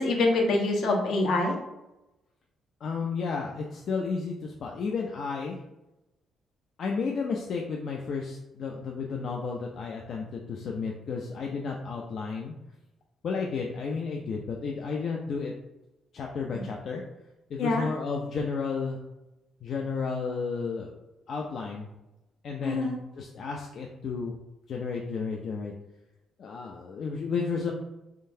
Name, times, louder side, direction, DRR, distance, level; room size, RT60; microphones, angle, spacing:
voice 1, 0.0-1.6 16.5-16.6 17.6-17.9 22.6-23.0, left 2 dB, 80° left, 1 dB, 0.9 m, -25 dB
voice 2, 2.8-5.6 6.8-12.5 13.2-15.5 16.1-17.0 17.5-19.0 19.6-21.0 21.3-21.9 22.4-24.3 24.7-25.7 26.4-27.7, left 5 dB, 60° left, 0 dB, 0.4 m, -32 dB
3.7 x 3.3 x 2.7 m, 0.96 s
cardioid pair, 90°, 0 cm